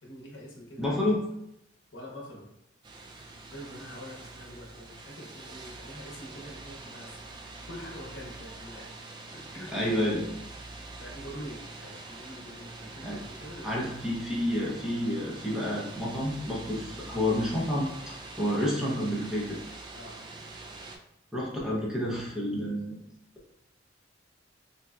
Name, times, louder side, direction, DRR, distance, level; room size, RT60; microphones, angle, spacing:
voice 1, 0.0-0.9 1.9-2.5 3.5-7.2 7.7-8.9 9.3-9.7 11.0-13.7 14.0-14.1 19.9-20.1, equal, 70° left, -2 dB, 0.8 m, -45 dB
voice 2, 0.8-1.2 9.7-10.3 13.0-13.2 13.6-19.6 21.3-23.0, left 1 dB, 5° right, -6 dB, 0.7 m, -29 dB
sound 1, 2.8-21.0, right 2 dB, 25° right, 0.3 m, -45 dB
3.3 x 2.6 x 2.3 m, 0.81 s
head